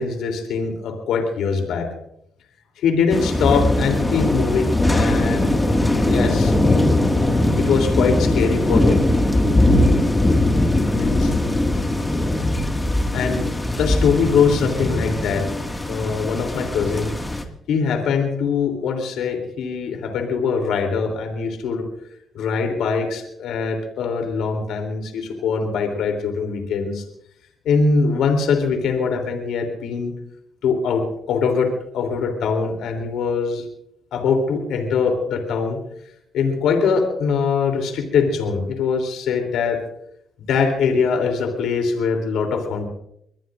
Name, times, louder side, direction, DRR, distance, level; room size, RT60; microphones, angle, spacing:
voice 1, 0.0-1.9 2.8-5.5 6.0-6.5 7.6-9.0 10.9-11.3 13.1-13.4 13.8-17.1 17.7-21.8 22.3-27.0 27.6-30.1 30.6-33.6 34.1-35.8 36.3-39.8 40.5-42.9, left 5 dB, 80° left, 4 dB, 3.3 m, -22 dB
sound 1, 3.1-17.4, left 1 dB, 15° left, 2.1 m, -20 dB
24.0 x 20.5 x 2.6 m, 0.74 s
cardioid pair, 90°, 0 cm